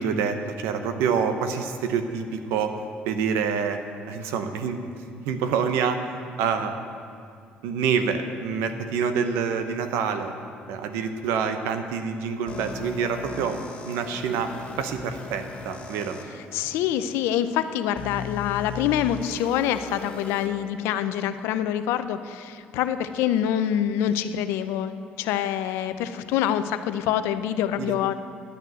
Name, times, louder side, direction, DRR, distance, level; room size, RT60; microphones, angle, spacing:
voice 1, 0.0-2.8 3.0-3.8 4.1-4.9 5.3-6.1 6.4-6.8 7.6-10.3 10.7-13.6 13.8-16.2 27.8-28.1, right 6 dB, 85° right, 8 dB, 0.9 m, -27 dB
sound 1, 9.8-10.1 11.2-11.4 13.1-13.7 14.3-14.9 15.9-17.1, right 1 dB, 45° right, 3.5 m, -50 dB
sound 2, 12.5-16.2 17.0-17.1 18.0-20.5, left 4 dB, 25° left, 2.3 m, -38 dB
voice 2, 16.3-28.1, left 10 dB, 85° left, 11 dB, 0.6 m, -26 dB
11.5 x 6.7 x 8.8 m, 2.3 s
supercardioid pair, 80°, 4 cm